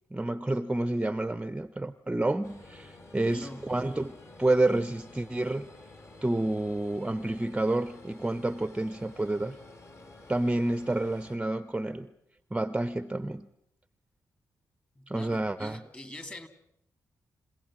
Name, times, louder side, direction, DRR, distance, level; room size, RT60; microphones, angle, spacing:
voice 1, 0.1-5.7 6.2-9.6 10.3-12.1 12.5-13.5 15.1-15.8, right 2 dB, 15° right, 13 dB, 0.8 m, -29 dB
sound 1, 2.4-11.4, left 2 dB, 40° left, 3.6 m, -51 dB
voice 2, 3.3-3.7 15.0-16.5, left 1 dB, 20° left, 9 dB, 2.6 m, -44 dB
29.5 x 16.5 x 7.6 m, 0.74 s
cardioid pair, 70°, 7 cm